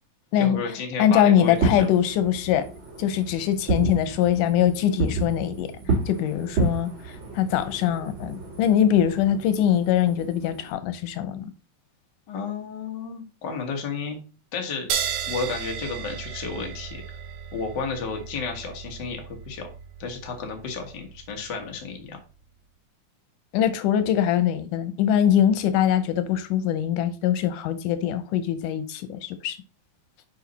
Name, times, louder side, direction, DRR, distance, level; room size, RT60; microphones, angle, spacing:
voice 1, 0.4-1.9 12.3-14.2 14.5-14.9 15.3-17.0 17.5-19.7 20.0-22.2, left 5 dB, 45° left, 1.6 m, -32 dB
voice 2, 1.0-2.7 3.0-5.7 6.1-11.5 23.5-29.6, left 10 dB, 90° left, 2.3 m, -22 dB
Fireworks, 1.4-10.7, right 4 dB, 40° right, 2.9 m, -31 dB
sound 1, 14.9-21.9, right 8 dB, 75° right, 2.2 m, -35 dB
6.8 x 4.9 x 4.1 m
omnidirectional pair, 3.5 m